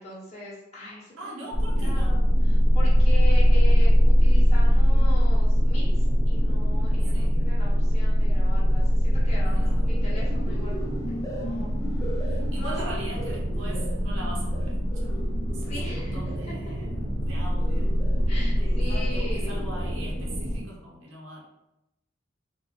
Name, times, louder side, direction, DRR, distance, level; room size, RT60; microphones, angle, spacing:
voice 1, 0.0-1.1 1.8-11.7 12.1-12.7 15.7-16.5 18.3-19.5, left 1 dB, 35° left, -8 dB, 1.4 m, -40 dB
voice 2, 1.2-2.2 7.0-7.4 9.4-9.9 11.8-15.2 15.5-18.0 18.6-21.4, right 1 dB, 80° right, -3 dB, 1.0 m, -41 dB
sound 1, 1.5-20.6, equal, 50° right, 0.8 m, -22 dB
sound 2, 9.7-20.3, equal, 15° left, 0.4 m, -40 dB
4.1 x 2.0 x 3.1 m, 0.91 s
head